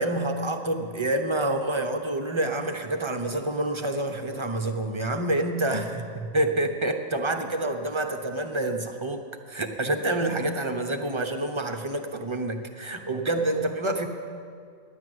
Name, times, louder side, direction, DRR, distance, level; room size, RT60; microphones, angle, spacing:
voice 1, 0.0-9.2 9.5-14.1, right 1 dB, 40° right, 4 dB, 0.4 m, -27 dB
10.5 x 10.5 x 7.8 m, 2.2 s
omnidirectional pair, 1.6 m